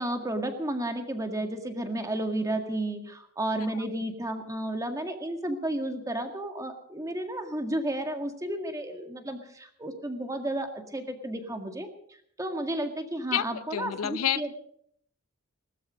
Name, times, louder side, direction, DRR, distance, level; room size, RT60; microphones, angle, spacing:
voice 1, 0.0-14.5, right 1 dB, 15° right, 5 dB, 1.9 m, -32 dB
voice 2, 13.3-14.4, left 10 dB, 75° left, 15 dB, 0.6 m, -29 dB
20.0 x 13.0 x 5.2 m, 0.68 s
head